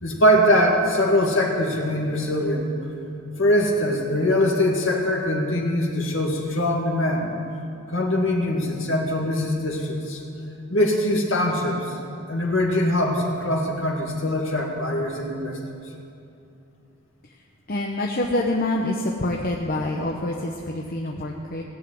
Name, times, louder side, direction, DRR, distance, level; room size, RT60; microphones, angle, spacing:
voice 1, 0.0-2.7 3.4-7.3 7.9-10.2 10.7-12.0 12.3-15.6, left 1 dB, 65° left, 0 dB, 2.3 m, -22 dB
voice 2, 17.7-21.6, left 1 dB, 45° left, 0 dB, 0.9 m, -26 dB
17.0 x 7.5 x 9.2 m, 2.6 s
head